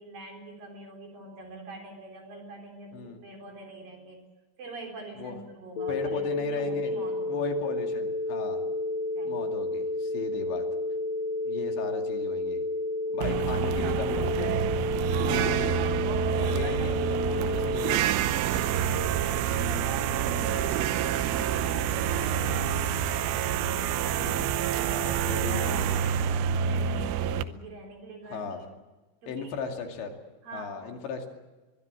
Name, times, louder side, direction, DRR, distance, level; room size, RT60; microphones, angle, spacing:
voice 1, 0.0-4.2 4.6-7.5 9.2-9.4 13.1-13.3 15.1-16.0 16.3-17.0 18.1-22.9 24.7-28.5 29.2-29.6 30.4-30.8, right 3 dB, 50° right, 3 dB, 5.5 m, -44 dB
Telephone, 5.8-18.0, left 2 dB, 50° left, 2.4 m, -31 dB
voice 2, 5.9-6.9 7.3-8.6 9.2-10.6 11.4-12.6 13.1-14.6 15.3-15.8 16.5-18.0 24.2-24.6 24.9-26.0 28.3-28.7 29.3-30.2 30.5-31.3, left 5 dB, 75° left, 3 dB, 4.7 m, -36 dB
sound 1, 13.2-27.4, right 9 dB, 80° right, 3.0 m, -27 dB
23.0 x 22.5 x 7.6 m, 1.2 s
omnidirectional pair, 5.2 m